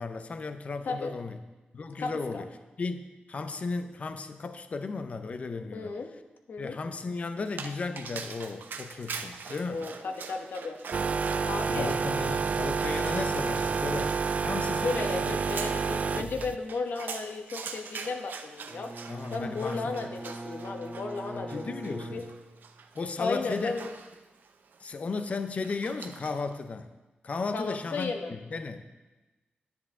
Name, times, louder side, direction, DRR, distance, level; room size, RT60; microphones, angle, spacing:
voice 1, 0.0-1.4 1.7-2.5 2.8-5.9 6.6-9.8 11.7-15.4 16.2-16.3 19.1-19.9 21.3-22.2 22.9-23.8 24.8-26.9 27.2-28.8, left 4 dB, 40° left, 9 dB, 0.6 m, -35 dB
voice 2, 2.0-2.4 5.7-6.1 6.5-6.8 9.7-10.8 11.4-11.9 14.8-22.2 23.2-23.9 27.5-28.3, left 4 dB, 70° left, 5 dB, 1.0 m, -34 dB
Dog, 7.4-26.5, right 5 dB, 70° right, 0.7 m, -44 dB
sound 1, 10.9-16.6, right 5 dB, 45° right, 0.3 m, -29 dB
Bowed string instrument, 18.7-22.9, right 2 dB, 30° right, 2.0 m, -42 dB
10.5 x 10.0 x 3.7 m, 1.1 s
wide cardioid pair, 160°, 3 cm